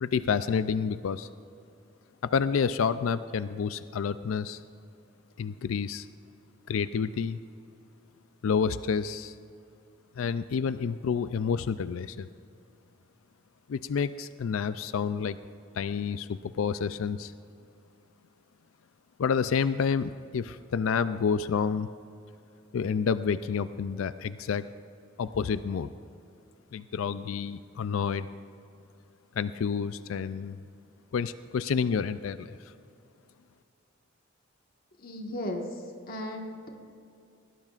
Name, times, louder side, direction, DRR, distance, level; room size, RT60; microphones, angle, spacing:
voice 1, 0.0-1.3 2.2-4.6 5.4-6.1 6.7-7.4 8.4-9.4 10.2-12.3 13.7-15.4 15.7-17.3 19.2-21.9 22.7-24.7 25.2-25.9 26.7-28.3 29.4-30.6 31.1-32.6, left 6 dB, 80° left, 13 dB, 0.4 m, -29 dB
voice 2, 35.0-36.7, left 1 dB, 45° left, 1 dB, 1.5 m, -36 dB
21.0 x 17.5 x 2.5 m, 2.6 s
head